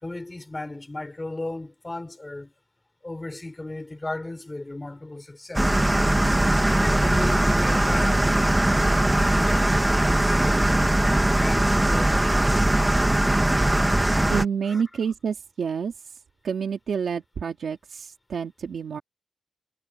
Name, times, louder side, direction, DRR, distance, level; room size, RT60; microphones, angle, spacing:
voice 1, 0.0-2.5 3.0-5.8 6.6-10.9 11.4-12.6 14.7-14.8, left 2 dB, 15° left, 4.2 m, -36 dB
sound 1, 5.5-14.4, right 1 dB, 10° right, 1.4 m, -20 dB
voice 2, 14.3-15.9 16.4-19.0, right 6 dB, 55° right, 2.7 m, -28 dB
wide cardioid pair, 175°, 0 cm